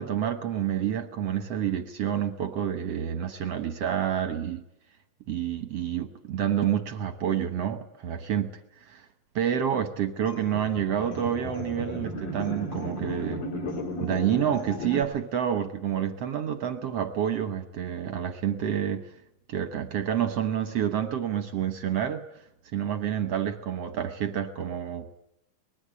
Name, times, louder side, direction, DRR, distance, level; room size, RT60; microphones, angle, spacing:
voice 1, 0.0-4.6 5.3-8.5 8.8-9.0 9.3-13.4 14.0-19.1 19.5-22.2 22.7-25.2, right 9 dB, 65° right, 8 dB, 1.6 m, -28 dB
sound 1, 10.3-15.0, left 1 dB, 70° left, 5.1 m, -35 dB
24.0 x 20.5 x 8.6 m, 0.82 s
omnidirectional pair, 4.2 m